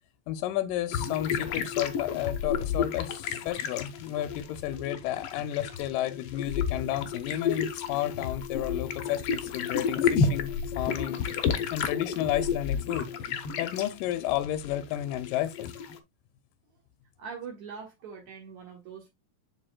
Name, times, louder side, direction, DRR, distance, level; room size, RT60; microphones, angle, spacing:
voice 1, 0.3-13.1 13.6-15.7, left 12 dB, 90° left, 2.2 m, -32 dB
sound 1, 0.9-16.0, left 6 dB, 65° left, 1.5 m, -31 dB
voice 2, 17.2-19.1, right 6 dB, 65° right, 2.8 m, -42 dB
7.5 x 6.7 x 2.2 m
omnidirectional pair, 3.7 m